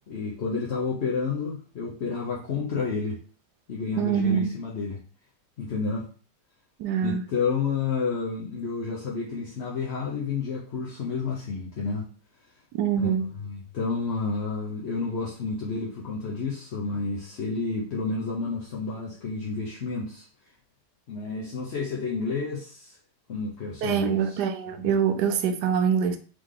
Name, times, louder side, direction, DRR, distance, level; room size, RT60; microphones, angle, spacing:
voice 1, 0.1-3.2 3.7-5.0 5.6-6.1 7.0-12.0 13.0-20.3 21.1-23.0 23.3-24.4 24.8-25.0, left 4 dB, 50° left, 0.8 m, -30 dB
voice 2, 4.0-4.5 6.8-7.2 12.7-13.3 23.8-26.2, right 7 dB, 75° right, 1.2 m, -24 dB
3.7 x 3.3 x 3.7 m
omnidirectional pair, 1.9 m